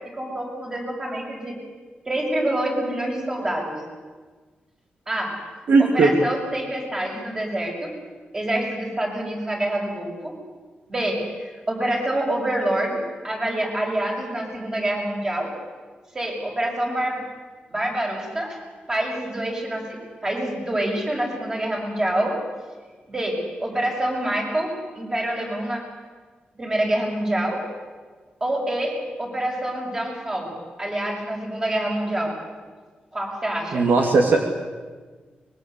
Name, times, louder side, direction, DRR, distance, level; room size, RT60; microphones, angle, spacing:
voice 1, 0.1-1.6 2.0-3.8 5.1-5.3 5.8-7.9 8.3-10.4 10.9-15.5 16.1-17.2 17.7-18.6 18.9-22.3 23.1-25.8 26.5-27.6 28.4-32.4 33.1-33.9, right 1 dB, 25° right, 0 dB, 6.8 m, -26 dB
voice 2, 5.7-6.1 33.7-34.4, right 3 dB, 65° right, 3 dB, 2.5 m, -17 dB
24.0 x 21.5 x 8.3 m, 1.4 s
wide cardioid pair, 130°, 3 cm